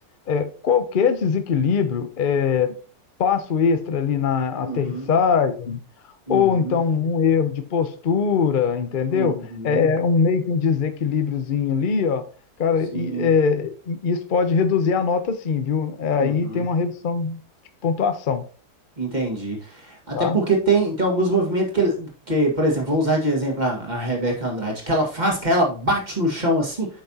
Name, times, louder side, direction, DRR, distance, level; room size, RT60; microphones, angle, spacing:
voice 1, 0.3-2.7 3.2-5.8 6.3-12.2 12.6-17.4 17.8-18.4 20.1-20.4, left 6 dB, 50° left, 9 dB, 0.6 m, -22 dB
voice 2, 4.6-5.1 6.3-6.8 9.1-9.9 12.9-13.3 16.2-16.6 19.0-26.9, right 1 dB, 25° right, 0 dB, 1.9 m, -23 dB
8.5 x 5.8 x 2.8 m, 0.37 s
omnidirectional pair, 1.7 m